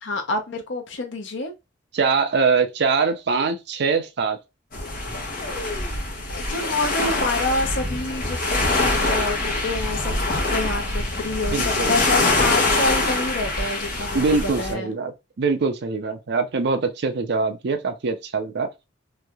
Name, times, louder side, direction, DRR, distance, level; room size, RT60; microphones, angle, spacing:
voice 1, 0.0-1.5 5.8-5.9 6.3-14.9, left 2 dB, 70° left, 0.7 m, -28 dB
voice 2, 1.9-4.4 11.5-12.0 14.1-18.7, right 4 dB, 60° right, 0.5 m, -23 dB
sound 1, 4.7-14.7, left 2 dB, 50° left, 1.1 m, -24 dB
3.2 x 2.7 x 2.3 m
head